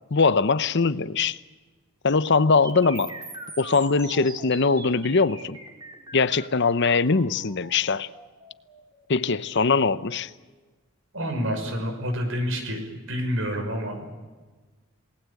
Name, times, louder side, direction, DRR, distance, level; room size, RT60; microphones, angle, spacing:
voice 1, 0.1-1.4 2.0-3.2 3.6-5.6 6.1-8.1 9.1-10.3, left 4 dB, 55° left, 0.8 m, -22 dB
sound 1, 2.6-10.6, right 2 dB, 20° right, 4.0 m, -43 dB
voice 2, 11.1-12.8 13.1-14.1, equal, 60° right, 5.8 m, -28 dB
28.0 x 19.5 x 8.4 m
head